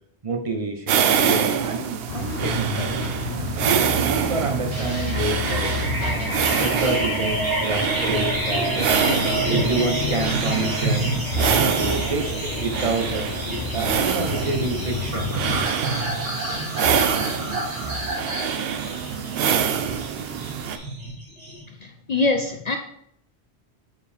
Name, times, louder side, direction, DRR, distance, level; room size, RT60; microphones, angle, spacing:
voice 1, 0.2-3.0 3.5-8.9 9.5-13.2 13.7-15.4, right 3 dB, 35° right, 4 dB, 0.8 m, -28 dB
sound 1, 0.9-20.8, right 7 dB, 65° right, 0.7 m, -26 dB
sound 2, 2.1-15.6, left 5 dB, 75° left, 0.9 m, -31 dB
sound 3, 4.7-21.6, right 1 dB, 85° right, 2.5 m, -28 dB
voice 2, 21.7-22.8, left 3 dB, 55° left, 5 dB, 0.4 m, -24 dB
7.2 x 4.8 x 3.3 m, 0.72 s
omnidirectional pair, 1.1 m